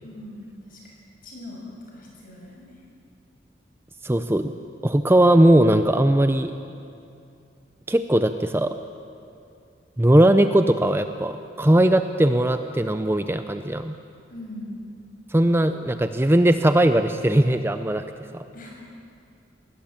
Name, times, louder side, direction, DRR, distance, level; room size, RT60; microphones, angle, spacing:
voice 1, 0.0-0.9 1.2-2.8 14.3-14.9 18.5-18.7, left 1 dB, 50° left, -2 dB, 6.7 m, -40 dB
voice 2, 4.0-4.5 4.8-6.5 7.9-8.8 10.0-14.0 15.3-18.0, right 1 dB, 10° right, 9 dB, 0.5 m, -19 dB
20.5 x 19.0 x 8.8 m, 2.5 s
head